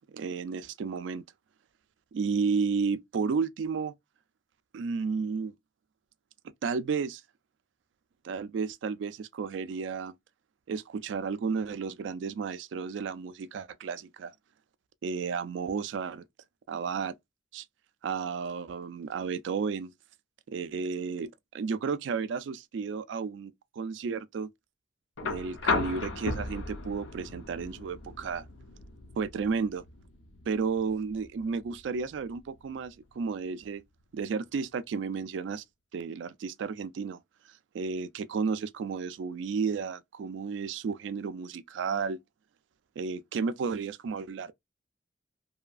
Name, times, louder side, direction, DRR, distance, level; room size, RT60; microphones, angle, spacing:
voice 1, 0.1-1.2 2.1-3.9 4.7-5.5 6.4-7.2 8.2-10.1 10.7-14.3 15.0-16.2 16.7-17.2 17.5-17.6 18.0-19.9 20.5-24.5 25.2-28.4 29.2-29.8 30.5-33.8 34.1-35.6 35.9-37.2 37.7-42.2 43.0-44.5, right 5 dB, 75° right, 0.3 m, -32 dB
Limbo Opener, 25.2-33.2 34.6-34.7, left 3 dB, 85° left, 0.5 m, -36 dB
2.7 x 2.4 x 2.3 m
head